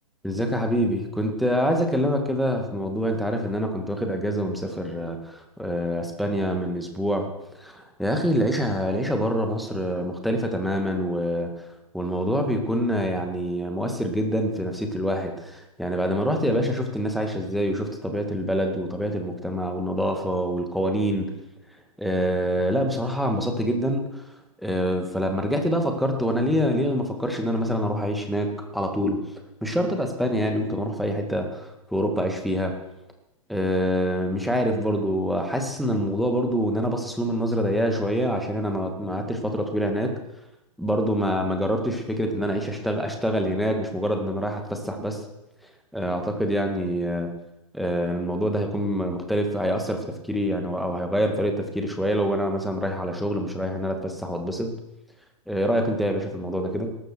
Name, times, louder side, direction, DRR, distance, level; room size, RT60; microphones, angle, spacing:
voice 1, 0.2-7.3 7.6-11.5 11.9-21.3 22.0-24.2 24.6-29.2 29.6-32.8 33.5-40.2 40.8-45.2 45.9-47.3 47.7-54.8 55.5-57.0, equal, ahead, 3 dB, 2.0 m, -26 dB
19.0 x 13.0 x 4.6 m, 0.91 s
figure-of-eight pair, 120°, 19 cm